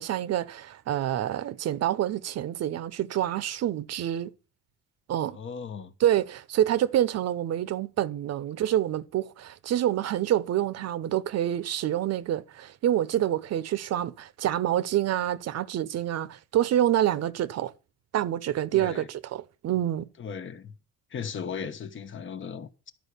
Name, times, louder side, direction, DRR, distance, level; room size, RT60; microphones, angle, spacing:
voice 1, 0.0-4.3 5.1-5.4 6.0-17.7 18.1-20.1, right 11 dB, 60° right, 0.9 m, -27 dB
voice 2, 5.3-5.9 18.7-19.1 20.2-20.7 21.1-22.9, left 6 dB, 40° left, 1.2 m, -37 dB
11.5 x 4.9 x 8.3 m
cardioid pair, 110°, 29 cm